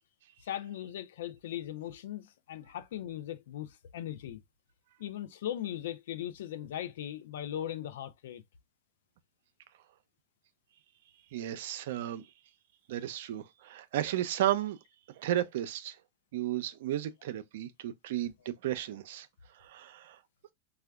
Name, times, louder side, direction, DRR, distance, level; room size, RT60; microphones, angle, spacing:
voice 1, 0.4-4.4 5.0-8.4, left 11 dB, 75° left, 0.4 m, -39 dB
voice 2, 11.3-12.2 12.9-14.8 15.2-16.0 16.3-19.3 19.6-20.2, right 12 dB, 70° right, 0.4 m, -33 dB
3.4 x 2.2 x 2.2 m
hypercardioid pair, 125°, 0 cm